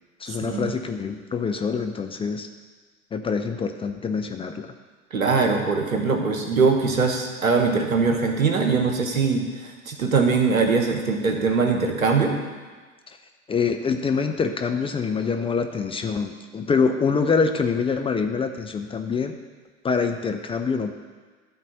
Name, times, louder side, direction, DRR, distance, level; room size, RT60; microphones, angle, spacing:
voice 1, 0.2-2.5 3.1-4.7 13.1-13.2 13.5-19.4 19.8-20.9, left 5 dB, 15° left, 5 dB, 0.5 m, -25 dB
voice 2, 5.1-9.5 9.9-12.3, right 4 dB, 85° right, 4 dB, 1.3 m, -21 dB
12.0 x 4.1 x 6.8 m, 1.4 s
figure-of-eight pair, 80°, 40 cm